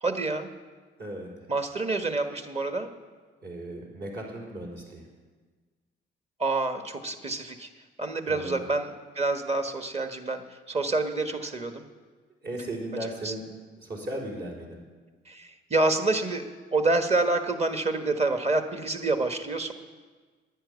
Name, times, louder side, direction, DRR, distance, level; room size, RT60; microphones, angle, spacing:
voice 1, 0.0-0.5 1.5-2.9 6.4-7.7 8.0-11.8 13.0-13.3 15.3-19.7, right 2 dB, 35° right, 6 dB, 1.5 m, -28 dB
voice 2, 1.0-1.3 3.4-5.1 8.3-8.6 12.4-13.4 13.8-14.8, right 1 dB, 55° right, -1 dB, 4.4 m, -36 dB
11.0 x 9.5 x 9.6 m, 1.4 s
cardioid pair, 90°, 20 cm